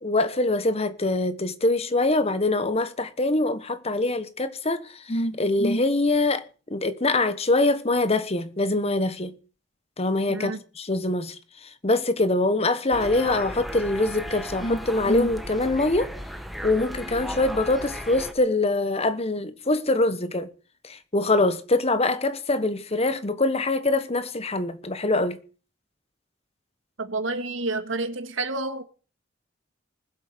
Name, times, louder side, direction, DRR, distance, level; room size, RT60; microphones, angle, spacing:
voice 1, 0.0-6.4 6.7-9.3 10.0-11.4 11.8-16.1 16.6-20.5 20.8-25.4, left 2 dB, 30° left, 1.3 m, -24 dB
voice 2, 10.3-10.6 27.0-28.8, right 2 dB, 85° right, 1.9 m, -29 dB
sound 1, 12.9-18.3, equal, ahead, 1.2 m, -36 dB
20.0 x 7.9 x 6.7 m
head